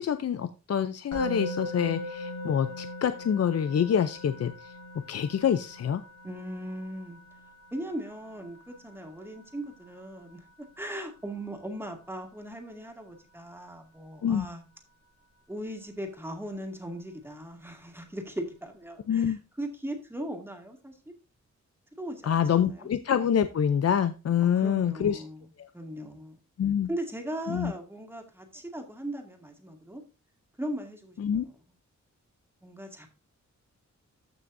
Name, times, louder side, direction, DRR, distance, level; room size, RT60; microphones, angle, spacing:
voice 1, 0.0-4.7 5.1-6.0 14.2-14.5 19.1-19.4 22.2-25.2 25.6-25.7 26.6-26.9 27.5-27.7 31.2-31.4, left 8 dB, 60° left, 11 dB, 0.6 m, -26 dB
Musical instrument, 1.1-12.2, equal, 80° left, 5.4 m, -41 dB
voice 2, 6.2-7.2 7.7-10.5 10.8-14.6 15.5-21.1 22.0-22.9 24.4-25.4 25.7-26.4 26.9-30.0 30.6-31.4 32.6-33.1, right 1 dB, 10° right, 3 dB, 2.2 m, -38 dB
14.0 x 6.0 x 2.6 m, 0.31 s
wide cardioid pair, 130°, 29 cm